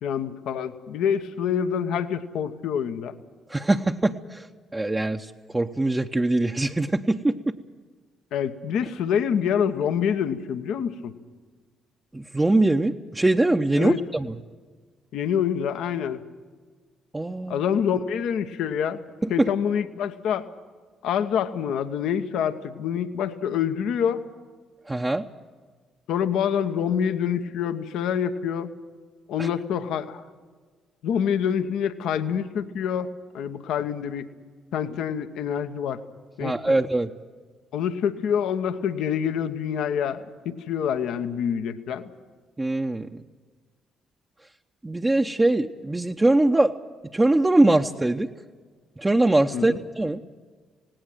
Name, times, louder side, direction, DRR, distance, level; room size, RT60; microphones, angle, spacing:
voice 1, 0.0-3.1 8.3-11.1 13.7-14.0 15.1-16.3 17.5-19.0 19.3-20.5 21.0-24.2 26.1-28.7 29.3-30.2 31.0-34.3 34.7-36.0 36.4-36.8 37.7-42.1 49.5-49.8, left 8 dB, 70° left, 10 dB, 1.0 m, -26 dB
voice 2, 3.5-4.5 4.7-7.5 12.1-14.3 17.1-17.6 24.9-25.3 29.4-29.5 36.4-37.1 42.6-43.1 44.8-46.7 47.1-48.3 49.0-50.2, right 2 dB, 20° right, 2 dB, 0.8 m, -22 dB
18.0 x 18.0 x 9.1 m, 1.5 s
hypercardioid pair, 45°, 0 cm